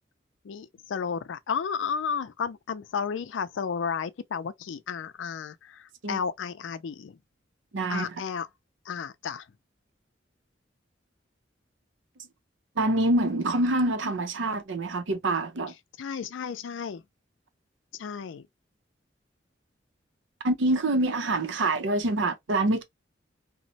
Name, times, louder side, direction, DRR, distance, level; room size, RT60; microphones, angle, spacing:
voice 1, 0.4-7.2 7.9-8.5 8.9-9.5 16.0-17.0 17.9-18.5, left 6 dB, 90° left, 0.4 m, -33 dB
voice 2, 7.7-8.1 12.8-15.7 20.4-22.8, right 2 dB, 85° right, 0.6 m, -26 dB
3.0 x 2.1 x 2.7 m
head